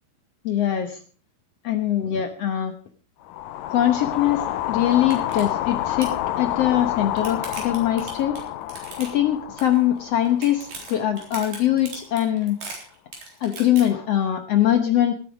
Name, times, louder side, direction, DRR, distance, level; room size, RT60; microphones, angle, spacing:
voice 1, 0.4-1.0 1.6-2.7 3.7-8.4 9.0-12.6 13.4-15.1, left 11 dB, 65° left, 7 dB, 1.7 m, -22 dB
sound 1, 3.3-11.5, left 13 dB, 85° left, 2.4 m, -29 dB
sound 2, 4.5-4.6 4.9-5.4 5.7-6.2 6.8-9.3 9.6-10.0 10.3-13.8, right 3 dB, 80° right, 5.6 m, -38 dB
18.0 x 9.2 x 4.9 m, 0.40 s
omnidirectional pair, 3.8 m